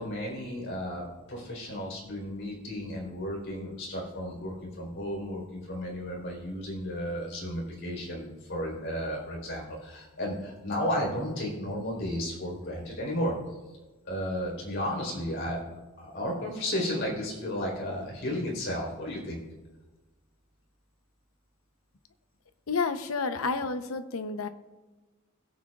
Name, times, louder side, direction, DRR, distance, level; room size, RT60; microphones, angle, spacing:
voice 1, 0.0-13.6 14.1-15.6 16.0-19.4, equal, 60° left, -2 dB, 4.0 m, -33 dB
voice 2, 22.7-24.5, left 4 dB, 90° left, 10 dB, 0.8 m, -30 dB
21.5 x 8.3 x 2.4 m, 1.2 s
head